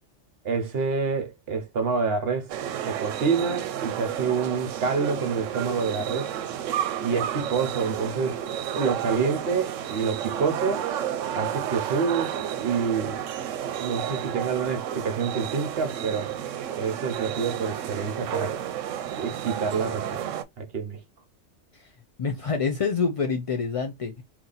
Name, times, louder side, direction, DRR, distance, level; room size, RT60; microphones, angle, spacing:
voice 1, 0.4-2.5 2.8-6.3 7.0-8.4 8.8-10.9 11.3-13.2 13.8-16.3 16.8-18.6 19.2-20.2 20.6-21.0, right 5 dB, 55° right, 1.0 m, -27 dB
sound 1, 2.5-20.4, right 10 dB, 85° right, 0.9 m, -31 dB
voice 2, 22.2-24.2, left 5 dB, 60° left, 0.3 m, -27 dB
2.9 x 2.8 x 3.8 m
omnidirectional pair, 1.3 m